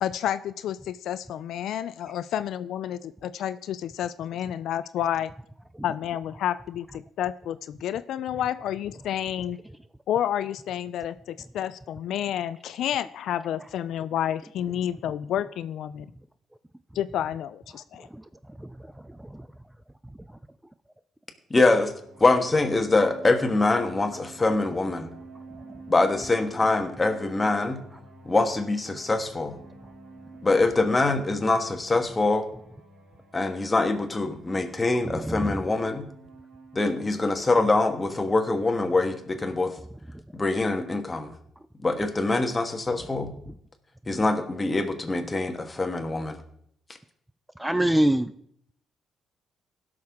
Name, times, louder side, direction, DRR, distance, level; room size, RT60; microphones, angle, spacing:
voice 1, 0.0-5.3 5.8-9.6 10.1-16.1 16.9-18.1, left 10 dB, 75° left, 14 dB, 0.3 m, -30 dB
voice 2, 21.5-21.9 22.2-25.1 25.9-27.8 28.2-29.6 30.4-32.4 33.3-36.1 36.7-39.7 40.3-41.3 41.8-43.3 44.1-46.4, left 2 dB, 20° left, 6 dB, 1.4 m, -24 dB
sound 1, 21.8-39.2, right 3 dB, 65° right, 3.1 m, -48 dB
voice 3, 35.1-35.6 47.6-48.3, right 1 dB, 5° right, 12 dB, 0.4 m, -25 dB
16.5 x 6.3 x 3.6 m, 0.68 s
cardioid pair, 90°, 0 cm